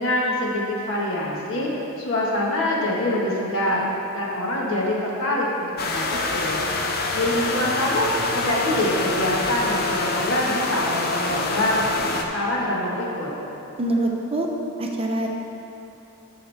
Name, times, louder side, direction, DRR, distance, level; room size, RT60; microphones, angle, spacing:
voice 1, 0.0-1.7 2.0-3.9 4.1-6.6 7.1-13.3, left 1 dB, 60° left, -4 dB, 1.6 m, -25 dB
sound 1, 5.8-12.2, left 3 dB, 45° left, 0.7 m, -26 dB
voice 2, 13.8-14.5 14.8-15.3, right 1 dB, 25° right, 0 dB, 0.6 m, -24 dB
12.5 x 6.4 x 3.5 m, 2.9 s
head